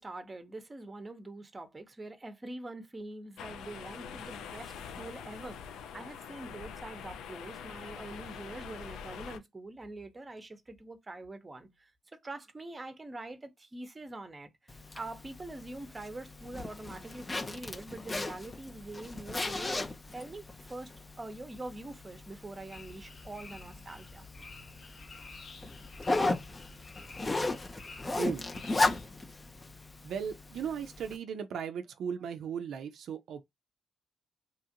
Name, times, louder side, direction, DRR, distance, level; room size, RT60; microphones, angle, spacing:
voice 1, 0.0-5.6 5.9-11.9 12.2-14.5 14.9-20.9 21.2-24.2, right 2 dB, 20° right, 0.7 m, -44 dB
sound 1, 3.4-9.4, left 7 dB, 80° left, 0.4 m, -44 dB
Zipper (clothing), 14.7-31.2, left 2 dB, 20° left, 0.4 m, -36 dB
sound 2, 22.7-29.0, left 3 dB, 45° left, 0.7 m, -50 dB
voice 2, 30.0-33.4, right 7 dB, 70° right, 0.4 m, -37 dB
2.9 x 2.4 x 2.7 m
cardioid pair, 90°, 0 cm